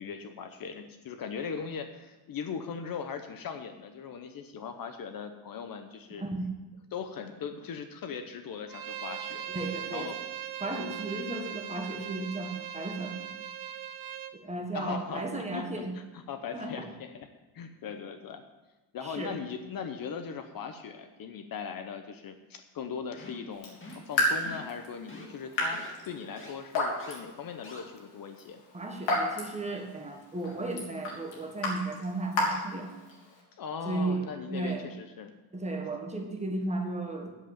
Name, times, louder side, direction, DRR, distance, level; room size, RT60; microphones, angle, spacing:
voice 1, 0.0-6.2 6.9-10.2 14.7-15.2 15.5-15.7 16.1-17.3 17.5-18.4 18.9-23.8 24.1-28.6 33.5-35.3, left 6 dB, 45° left, 8 dB, 0.9 m, -39 dB
Bowed string instrument, 8.7-14.3, right 10 dB, 45° right, 0.8 m, -39 dB
voice 2, 9.5-10.2 10.6-13.3 14.3-15.9 16.5-16.8 19.0-19.3 28.7-32.9 33.8-34.2 34.5-34.9 35.5-37.3, right 2 dB, 15° right, 2 dB, 1.5 m, -35 dB
sound 1, 23.2-23.5 23.8-24.1 24.4-24.8 25.1-25.3 25.7-25.9 26.4-26.5 27.0-27.2 27.6-27.8, left 2 dB, 25° left, 2.3 m, -45 dB
Raindrop / Drip, 23.5-33.4, left 1 dB, 70° left, 3.7 m, -34 dB
8.2 x 7.9 x 8.7 m, 1.1 s
cardioid pair, 150°, 47 cm